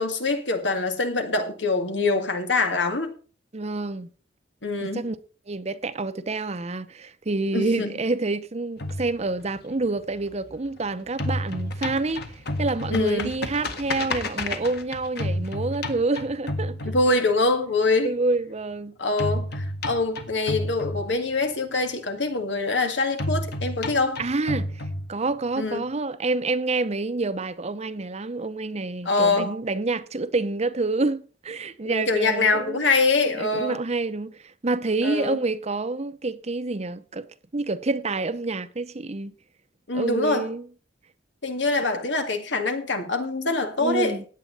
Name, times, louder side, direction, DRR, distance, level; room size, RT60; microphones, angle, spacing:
voice 1, 0.0-3.1 4.6-5.0 7.5-7.9 12.9-13.3 16.8-18.1 19.0-24.2 25.6-25.8 29.1-29.5 31.8-33.8 35.0-35.4 39.9-40.5 41.4-44.2, left 3 dB, 90° left, 2.2 m, -24 dB
voice 2, 3.5-4.1 4.8-5.2 5.5-12.3 12.6-17.2 18.0-18.9 24.2-24.8 25.1-32.8 33.4-37.3 37.5-39.3 39.9-40.7 43.8-44.2, right 3 dB, 40° right, 0.8 m, -28 dB
sound 1, 8.8-10.8 11.1-17.5 19.2-21.5 23.2-25.5, left 1 dB, 65° left, 1.7 m, -30 dB
16.0 x 9.4 x 4.1 m
head